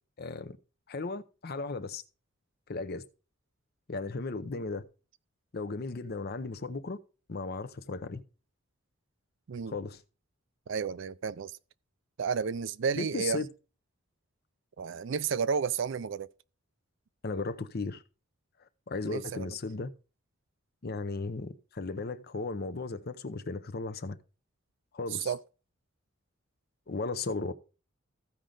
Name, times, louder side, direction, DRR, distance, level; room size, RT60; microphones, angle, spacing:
voice 1, 0.2-0.6 0.9-2.0 2.7-3.0 3.9-4.8 5.5-7.0 7.3-8.2 9.7-10.0 13.0-13.5 17.2-18.0 18.9-19.9 20.8-24.2 24.9-25.3 26.9-27.5, left 3 dB, 50° left, 0.7 m, -35 dB
voice 2, 10.7-11.5 12.2-13.4 14.8-16.3 19.0-19.6 25.1-25.4, right 6 dB, 60° right, 0.4 m, -32 dB
15.0 x 5.1 x 3.8 m
head